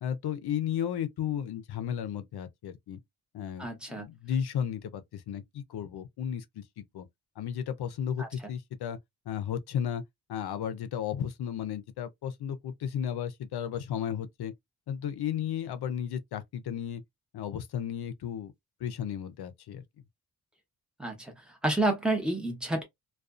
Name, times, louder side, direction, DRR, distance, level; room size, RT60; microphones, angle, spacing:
voice 1, 0.0-3.0 3.3-7.1 7.4-9.0 9.3-10.0 10.3-14.5 14.9-17.0 17.3-18.5 18.8-19.8, left 9 dB, 85° left, 0.5 m, -34 dB
voice 2, 3.6-4.0 8.2-8.3 21.0-22.8, right 2 dB, ahead, 0.8 m, -30 dB
2.4 x 2.3 x 2.3 m
wide cardioid pair, 135°, 38 cm